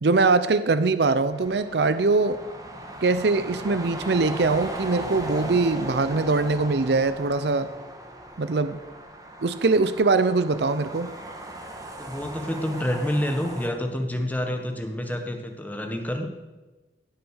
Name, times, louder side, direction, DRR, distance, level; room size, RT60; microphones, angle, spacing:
voice 1, 0.0-2.4 3.0-7.7 8.4-8.8 9.4-11.1, right 3 dB, 65° right, 12 dB, 0.6 m, -22 dB
sound 1, 1.3-13.7, right 1 dB, 20° right, 1.6 m, -38 dB
voice 2, 12.0-16.3, equal, 10° left, 4 dB, 1.3 m, -28 dB
17.0 x 6.6 x 6.4 m, 1.2 s
head